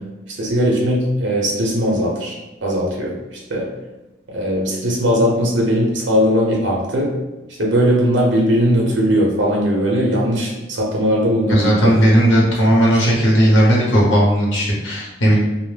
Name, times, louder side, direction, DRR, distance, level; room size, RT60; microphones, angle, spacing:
voice 1, 0.3-3.7 4.3-7.1 7.6-11.9, equal, 75° right, -2 dB, 0.7 m, -19 dB
voice 2, 11.5-15.4, equal, 85° left, -4 dB, 0.8 m, -15 dB
2.1 x 2.1 x 3.1 m, 1.1 s
head